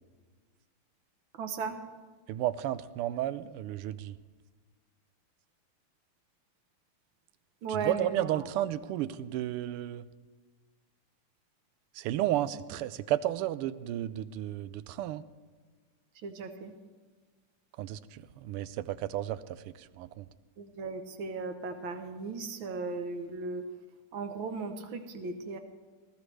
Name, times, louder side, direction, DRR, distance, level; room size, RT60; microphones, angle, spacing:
voice 1, 1.3-1.8 7.6-8.4 16.2-16.7 20.6-23.6 24.1-25.6, right 4 dB, 65° right, 7 dB, 1.7 m, -36 dB
voice 2, 2.3-4.2 7.7-10.1 11.9-15.2 17.8-20.3, right 13 dB, 85° right, 15 dB, 1.5 m, -33 dB
19.5 x 14.0 x 3.3 m, 1.4 s
omnidirectional pair, 2.4 m